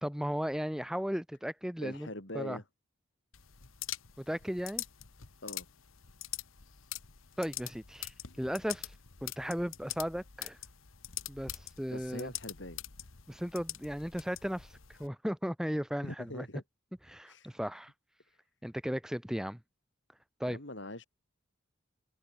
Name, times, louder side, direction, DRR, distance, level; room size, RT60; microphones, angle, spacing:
voice 1, 0.0-2.1 2.3-2.6 4.2-4.8 7.4-8.9 9.2-10.6 11.3-12.3 13.3-16.5 17.1-17.9 18.6-19.6 20.4-20.6, equal, 5° right, 0.8 m, -36 dB
voice 2, 1.8-2.6 5.4-5.7 11.9-12.8 16.0-16.6 17.3-17.6 18.3-18.4 20.5-21.1, left 1 dB, 60° left, 4.7 m, -43 dB
sound 1, 3.3-15.1, left 13 dB, 80° left, 1.5 m, -44 dB
head